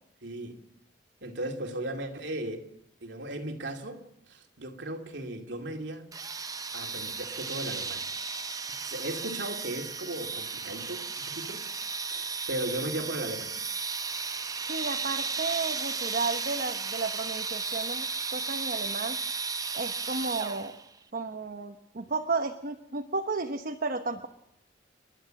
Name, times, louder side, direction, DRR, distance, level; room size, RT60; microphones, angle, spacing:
voice 1, 0.2-0.6 1.2-2.7 3.0-6.1 6.7-8.1 8.8-11.7 12.1-13.5, right 1 dB, 85° right, 2.6 m, -36 dB
sound 1, 6.1-20.9, right 4 dB, 20° right, 0.7 m, -34 dB
voice 2, 14.6-19.2 19.7-20.7 21.1-24.3, right 3 dB, 55° right, 1.1 m, -33 dB
30.0 x 11.5 x 7.7 m
head